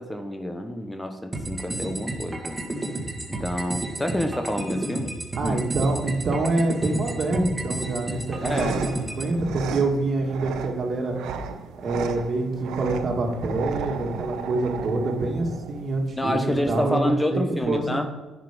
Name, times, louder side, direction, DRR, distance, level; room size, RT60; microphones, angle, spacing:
voice 1, 0.0-2.6 3.3-5.1 5.4-5.6 8.4-8.8 16.2-18.1, left 1 dB, 10° left, 6 dB, 0.9 m, -28 dB
sound 1, 1.3-9.3, right 2 dB, 15° right, 2.1 m, -32 dB
voice 2, 5.4-11.2 11.8-18.1, right 2 dB, 50° right, 2 dB, 1.9 m, -26 dB
sound 2, 8.1-16.1, right 6 dB, 85° right, 0.7 m, -35 dB
10.5 x 6.2 x 5.1 m, 1.2 s
cardioid pair, 90°, 0 cm